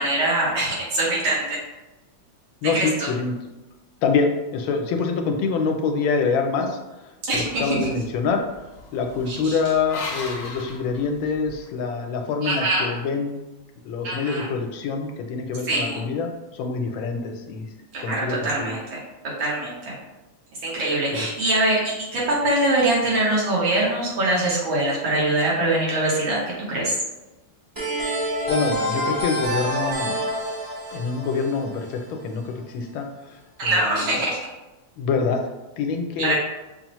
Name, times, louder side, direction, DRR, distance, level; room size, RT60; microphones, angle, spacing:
voice 1, 0.0-1.6 2.7-3.1 7.2-7.9 9.3-9.6 12.4-12.9 14.0-14.5 15.7-16.0 17.9-19.0 19.4-20.0 20.6-26.4 26.7-27.0 33.6-34.5 36.2-36.4, right 2 dB, 80° right, -5 dB, 2.0 m, -23 dB
voice 2, 2.6-3.3 4.0-8.5 8.9-13.4 13.8-17.6 18.0-18.7 21.1-21.3 28.5-30.4 30.9-34.2 35.0-35.4 35.8-36.4, left 5 dB, 85° left, 4 dB, 1.3 m, -26 dB
sound 1, 7.3-11.7, left 3 dB, 65° left, 0.8 m, -38 dB
sound 2, 27.8-32.4, equal, 25° right, 0.5 m, -27 dB
5.8 x 2.0 x 3.0 m, 1.1 s
omnidirectional pair, 2.2 m